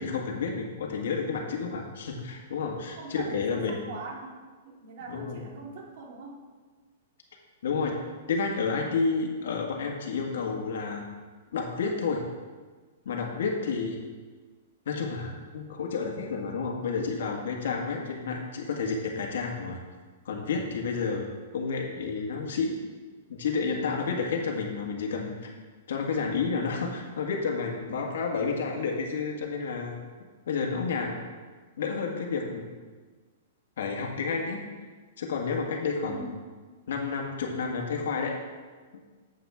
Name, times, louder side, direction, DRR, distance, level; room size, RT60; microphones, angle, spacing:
voice 1, 0.0-3.8 5.1-5.4 7.6-8.0 8.3-11.1 11.5-12.2 13.0-14.0 14.8-19.8 20.2-21.3 21.5-22.8 23.3-25.5 25.9-29.9 30.5-31.2 31.8-32.7 33.8-34.7 35.2-36.2 36.9-38.4, left 4 dB, 75° left, 0 dB, 1.6 m, -30 dB
voice 2, 3.0-6.5 36.0-36.5, right 3 dB, 50° right, 0 dB, 1.9 m, -42 dB
11.5 x 7.3 x 3.6 m, 1.4 s
hypercardioid pair, 165°, 0 cm